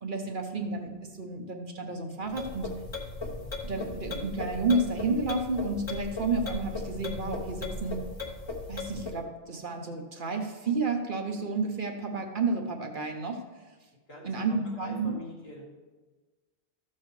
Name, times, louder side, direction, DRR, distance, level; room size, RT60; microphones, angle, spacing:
voice 1, 0.0-2.7 3.6-8.0 8.7-13.4 14.2-15.1, right 3 dB, 50° right, 3 dB, 1.0 m, -31 dB
sound 1, 2.3-9.2, left 3 dB, 25° left, 1.0 m, -37 dB
voice 2, 14.1-15.6, left 1 dB, 65° left, -5 dB, 2.5 m, -45 dB
13.0 x 7.5 x 3.2 m, 1.3 s
omnidirectional pair, 1.1 m